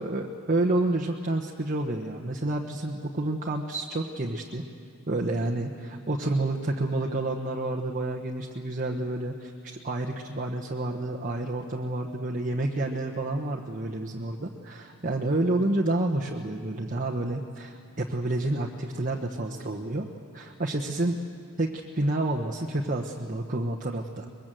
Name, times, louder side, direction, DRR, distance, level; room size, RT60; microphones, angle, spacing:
voice 1, 0.0-4.6 5.1-20.1 20.3-21.2 21.6-21.7 22.0-24.3, right 2 dB, 40° right, -1 dB, 1.1 m, -29 dB
24.0 x 22.0 x 7.7 m, 2.4 s
head